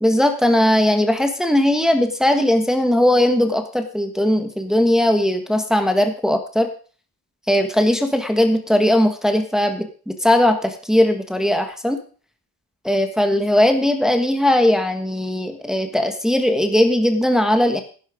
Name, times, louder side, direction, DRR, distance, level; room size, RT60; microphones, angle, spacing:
voice 1, 0.0-6.7 7.5-12.0 12.8-17.8, left 1 dB, ahead, 5 dB, 1.4 m, -18 dB
11.0 x 10.5 x 5.0 m, 0.40 s
wide cardioid pair, 110°, 37 cm